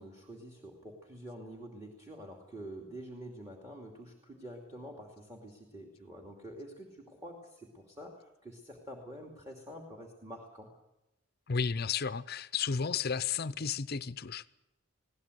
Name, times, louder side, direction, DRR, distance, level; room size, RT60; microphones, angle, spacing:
voice 1, 0.0-10.7, right 1 dB, 15° right, 2.5 m, -47 dB
voice 2, 11.5-14.5, left 6 dB, 50° left, 0.6 m, -33 dB
21.0 x 17.0 x 8.0 m
head